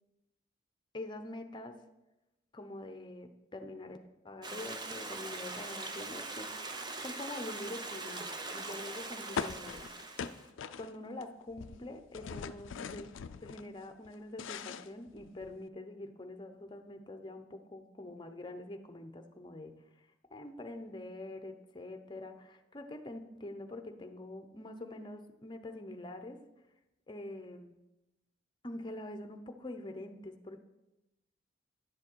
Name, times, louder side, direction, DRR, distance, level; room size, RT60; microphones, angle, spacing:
voice 1, 0.9-1.8 2.5-9.9 10.7-13.1 13.4-19.8 20.3-26.4 27.1-27.7 28.6-30.6, left 1 dB, 25° left, 6 dB, 0.7 m, -45 dB
Stream, 4.4-10.5, right 3 dB, 20° right, 0.6 m, -42 dB
sound 1, 9.4-11.2 11.5-13.6 14.0-15.6, left 6 dB, 80° left, 0.4 m, -41 dB
10.5 x 7.4 x 4.5 m, 0.97 s
head